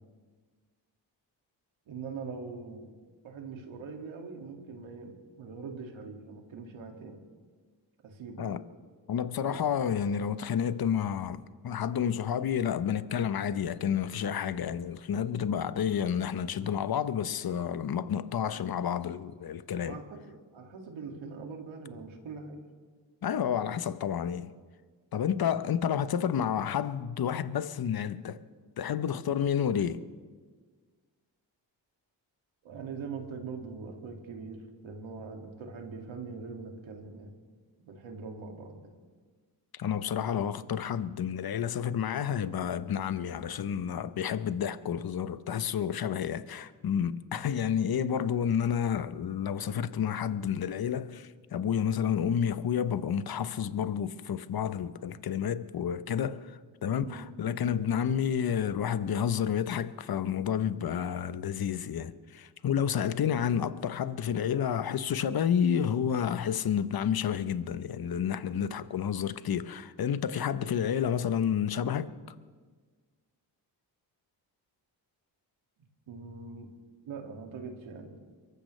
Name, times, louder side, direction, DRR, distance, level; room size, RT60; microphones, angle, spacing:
voice 1, 1.9-2.9 3.2-7.2 8.0-8.5 9.5-9.6 18.4-18.6 19.8-22.6 32.6-37.3 37.9-38.8 47.6-47.8 56.9-57.3 57.6-57.9 58.3-58.4 68.5-68.8 76.1-76.7 77.1-78.2, right 4 dB, 80° right, 2.3 m, -42 dB
voice 2, 9.1-20.0 23.2-24.5 25.1-28.4 28.8-30.0 39.7-72.1, left 8 dB, 50° left, 0.9 m, -30 dB
23.5 x 14.5 x 3.3 m
supercardioid pair, 50°, 46 cm